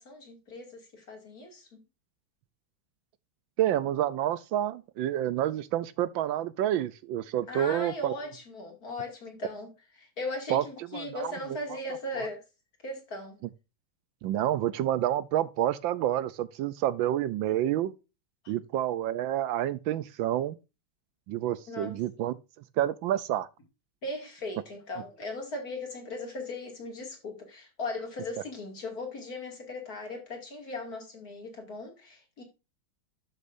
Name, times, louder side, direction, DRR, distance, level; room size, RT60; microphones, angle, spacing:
voice 1, 0.0-1.8 7.5-9.7 10.0-12.4 12.8-13.4 21.7-21.9 24.0-32.4, left 2 dB, 45° left, 2.9 m, -38 dB
voice 2, 3.6-8.1 10.5-10.6 10.9-11.3 12.2-12.3 14.2-17.9 18.5-20.6 21.3-22.3 22.8-23.5, right 12 dB, 75° right, 1.3 m, -28 dB
12.0 x 6.7 x 2.6 m
omnidirectional pair, 2.2 m